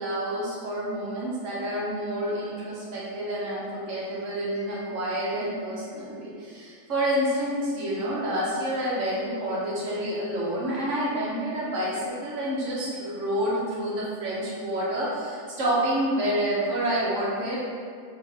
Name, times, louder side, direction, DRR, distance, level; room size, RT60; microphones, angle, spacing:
voice 1, 0.0-17.6, right 1 dB, 60° right, -6 dB, 1.1 m, -28 dB
3.4 x 2.5 x 3.6 m, 2.1 s
omnidirectional pair, 1.6 m